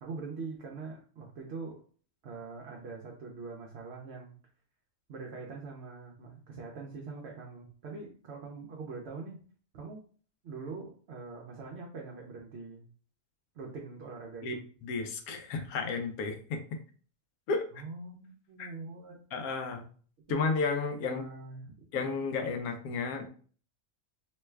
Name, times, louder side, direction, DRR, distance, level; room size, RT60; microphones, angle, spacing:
voice 1, 0.0-1.8 2.2-4.4 5.1-9.4 9.7-10.0 10.4-12.9 13.5-14.6 17.7-19.2 20.3-20.4 21.0-21.8, right 4 dB, 60° right, -1 dB, 0.7 m, -43 dB
voice 2, 14.8-16.6 17.5-17.7 18.6-18.7 19.3-19.9 20.3-21.2 21.9-23.3, left 4 dB, 85° left, 6 dB, 1.1 m, -32 dB
3.0 x 2.2 x 3.2 m, 0.43 s
omnidirectional pair, 1.5 m